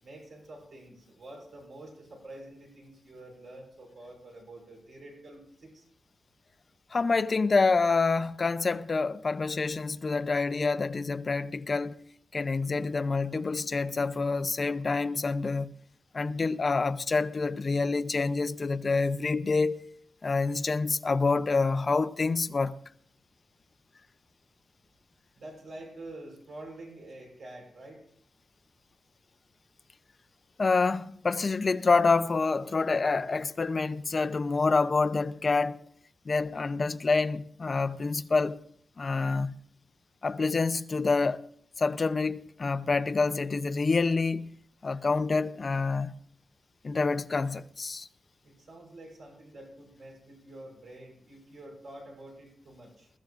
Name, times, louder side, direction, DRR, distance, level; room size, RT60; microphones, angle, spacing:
voice 1, 0.0-5.9 25.4-28.0 48.4-53.1, right 1 dB, 55° right, 5.7 m, -47 dB
voice 2, 6.9-12.0 12.3-15.7 16.1-19.8 20.2-22.8 30.6-35.8 36.3-38.6 39.0-39.5 40.2-41.4 41.8-44.5 44.8-46.1 46.8-48.1, left 4 dB, 30° left, 0.5 m, -27 dB
22.0 x 14.0 x 2.4 m
wide cardioid pair, 175°, 0 cm